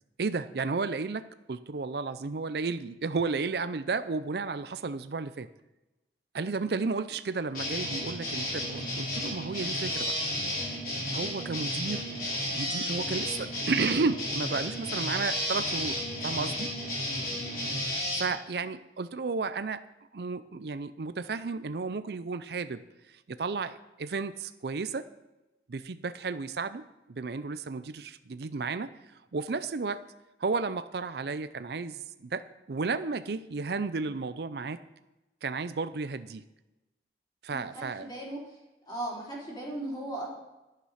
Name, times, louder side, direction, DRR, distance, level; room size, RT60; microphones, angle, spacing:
voice 1, 0.2-5.5 6.3-10.2 11.1-12.1 12.5-16.7 17.9-19.8 20.1-22.8 23.3-25.1 25.7-28.9 29.3-30.0 30.4-34.8 35.4-36.4 37.4-38.1, right 4 dB, 65° right, 12 dB, 0.5 m, -33 dB
sound 1, 7.5-18.2, left 1 dB, 55° left, 4.4 m, -32 dB
voice 2, 37.5-38.4 38.9-40.3, right 1 dB, 25° left, -4 dB, 3.8 m, -37 dB
11.5 x 9.0 x 5.7 m, 1.0 s
head